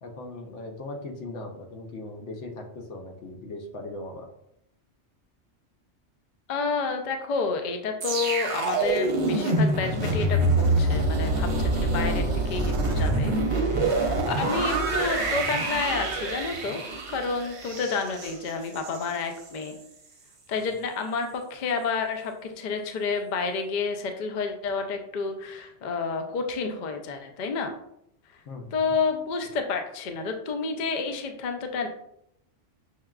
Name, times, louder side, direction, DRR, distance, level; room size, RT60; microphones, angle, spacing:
voice 1, 0.0-4.3 28.5-28.9, left 2 dB, 75° left, 2 dB, 1.0 m, -39 dB
voice 2, 6.5-16.8 17.1-19.8 20.5-27.7 28.7-31.9, left 4 dB, 60° left, 5 dB, 0.5 m, -30 dB
sound 1, 8.0-19.1 19.4-19.7, right 2 dB, 60° right, 0.8 m, -26 dB
6.2 x 2.2 x 2.3 m, 0.76 s
omnidirectional pair, 1.2 m